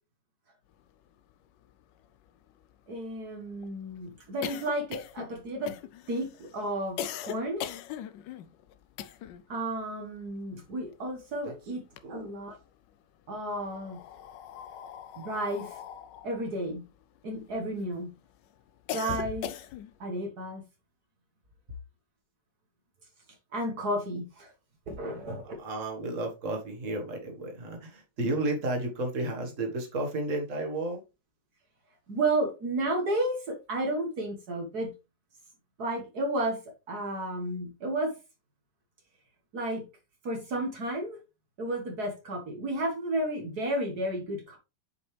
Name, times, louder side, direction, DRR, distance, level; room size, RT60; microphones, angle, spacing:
sound 1, 1.3-1.4 1.6-1.7 2.0-9.5 9.8-11.4 11.7-12.7 13.4-17.9 18.3-20.0, left 10 dB, 90° left, 1.3 m, -40 dB
voice 1, 2.9-5.8 6.1-7.6 9.5-11.8 12.1-12.6 13.3-14.0 15.2-15.7 16.2-16.8 17.2-18.1 18.9-19.5 20.0-20.6 23.5-24.5 24.9-25.6 32.1-34.9 35.8-36.6 36.9-38.1 39.5-39.8 40.2-41.2 41.6-44.6, right 1 dB, 65° right, 2.0 m, -32 dB
voice 2, 12.0-12.3 25.6-31.0, right 2 dB, 45° right, 1.9 m, -32 dB
7.1 x 5.3 x 3.3 m
omnidirectional pair, 1.9 m